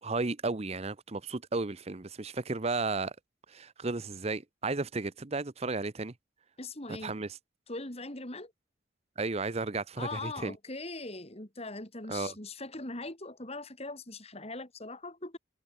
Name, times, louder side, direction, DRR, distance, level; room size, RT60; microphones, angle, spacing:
voice 1, 0.0-3.1 3.5-6.1 7.0-7.3 9.2-10.5 12.1-12.3, right 3 dB, 35° right, 0.8 m, -33 dB
voice 2, 6.6-7.1 7.7-8.5 10.0-15.4, left 2 dB, 35° left, 3.6 m, -41 dB
head